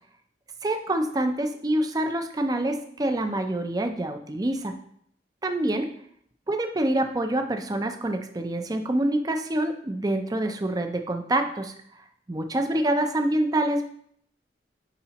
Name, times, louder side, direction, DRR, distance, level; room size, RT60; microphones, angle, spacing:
voice 1, 0.6-4.7 5.4-5.9 6.5-11.7 12.3-13.8, right 1 dB, 20° right, 6 dB, 0.4 m, -26 dB
9.9 x 3.9 x 2.9 m, 0.67 s
head